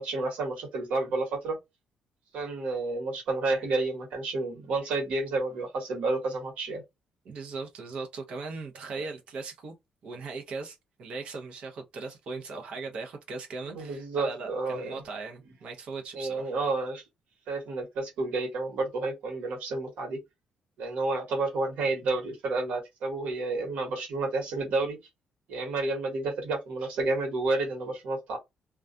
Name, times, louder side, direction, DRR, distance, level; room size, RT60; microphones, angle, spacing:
voice 1, 0.0-1.6 2.3-6.8 8.9-9.1 13.6-15.0 16.1-17.0 17.5-20.2 20.8-25.0 25.5-28.4, right 3 dB, 85° right, 1.2 m, -30 dB
voice 2, 7.3-9.7 10.0-16.5, right 4 dB, 55° right, 0.7 m, -39 dB
2.3 x 2.2 x 2.5 m
cardioid pair, 160°, 2 cm